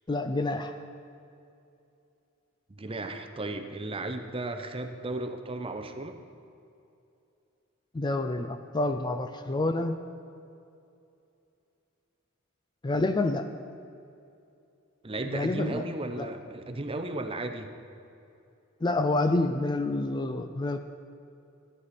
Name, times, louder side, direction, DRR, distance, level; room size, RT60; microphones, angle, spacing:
voice 1, 0.1-0.7 7.9-10.0 12.8-13.5 15.3-15.8 16.2-16.3 18.8-20.8, left 2 dB, 20° left, 8 dB, 0.4 m, -28 dB
voice 2, 2.7-6.2 15.0-17.7, right 2 dB, 25° right, 7 dB, 0.7 m, -35 dB
13.5 x 9.7 x 4.2 m, 2.6 s
head